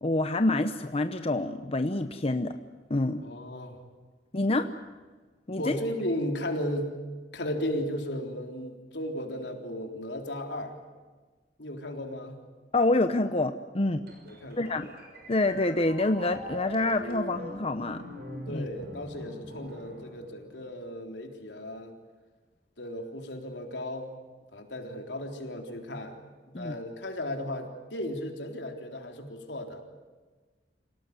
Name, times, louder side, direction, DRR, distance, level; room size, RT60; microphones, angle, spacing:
voice 1, 0.0-2.6 2.9-3.2 4.3-4.7 5.5-5.8 12.7-14.0 14.6-14.9 15.3-18.0 18.5-18.7 26.5-26.8, left 2 dB, 35° left, 8 dB, 0.9 m, -27 dB
voice 2, 3.2-3.8 5.6-6.9 7.3-10.8 11.6-12.4 14.2-14.8 18.5-21.9 22.8-24.1 24.5-26.2 26.5-29.8, left 1 dB, 85° left, 3 dB, 3.8 m, -35 dB
sound 1, 14.1-20.8, equal, 60° right, 6.2 m, -43 dB
27.5 x 18.0 x 9.7 m, 1.4 s
head